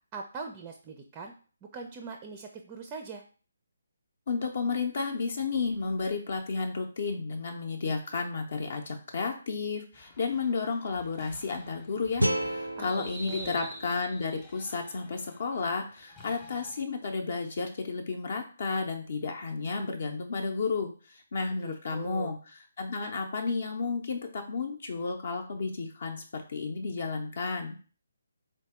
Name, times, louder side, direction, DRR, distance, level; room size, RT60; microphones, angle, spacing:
voice 1, 0.1-1.3 1.7-3.2 12.8-13.6 21.6-22.3, right 5 dB, 20° right, 4 dB, 0.4 m, -42 dB
voice 2, 4.3-27.8, left 4 dB, 50° left, 3 dB, 0.6 m, -32 dB
sound 1, 9.9-16.8, left 1 dB, 20° left, 0.8 m, -49 dB
sound 2, 12.2-15.3, right 1 dB, 90° right, 0.4 m, -33 dB
3.9 x 2.7 x 3.5 m, 0.39 s
figure-of-eight pair, 140°, 0 cm